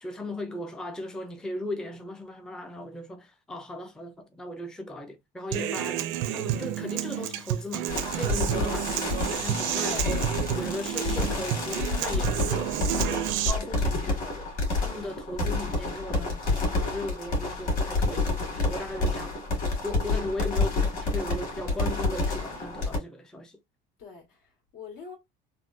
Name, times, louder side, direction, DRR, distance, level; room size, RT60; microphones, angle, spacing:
voice 1, 0.0-6.0 6.3-10.2 10.5-14.5 14.8-19.4 19.8-23.6, left 1 dB, 5° left, 0.4 m, -37 dB
Human voice / Acoustic guitar, 5.5-13.5, right 12 dB, 70° right, 0.5 m, -30 dB
sound 1, 7.9-23.0, left 2 dB, 40° left, 1.7 m, -29 dB
voice 2, 24.0-25.1, left 3 dB, 80° left, 1.8 m, -42 dB
3.5 x 2.2 x 2.5 m
cardioid pair, 140°, 20 cm